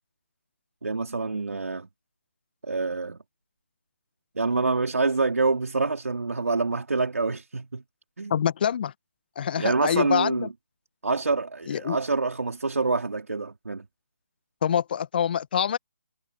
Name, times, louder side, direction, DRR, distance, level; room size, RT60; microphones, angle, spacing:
voice 1, 0.8-1.9 2.7-3.2 4.4-7.8 8.2-8.4 9.6-10.5 11.0-13.8, right 3 dB, 70° right, 4.6 m, -26 dB
voice 2, 8.3-8.9 9.4-10.5 11.7-12.0 14.6-15.8, left 8 dB, 40° left, 1.4 m, -25 dB
figure-of-eight pair, 150°, 8 cm